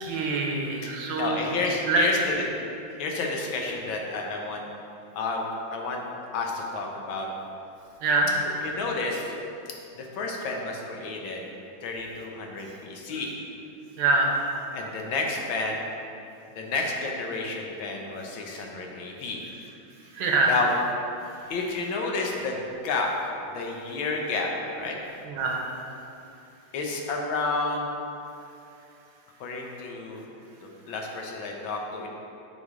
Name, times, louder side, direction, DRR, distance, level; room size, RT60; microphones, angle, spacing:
voice 1, 0.0-1.5 1.9-2.1 8.0-8.3 14.0-14.3 20.1-20.5 25.3-25.6, right 3 dB, 75° right, 0 dB, 1.5 m, -24 dB
voice 2, 1.2-2.5 3.0-4.6 5.1-5.5 5.7-6.0 6.3-7.3 8.6-9.3 10.1-11.4 11.8-13.3 14.7-15.8 16.6-19.4 20.5-20.7 21.5-22.6 22.8-23.1 23.5-24.9 26.7-27.9 29.4-30.3 30.6-32.1, left 3 dB, 85° left, 0 dB, 1.6 m, -30 dB
8.2 x 5.1 x 3.6 m, 2.7 s
omnidirectional pair, 2.1 m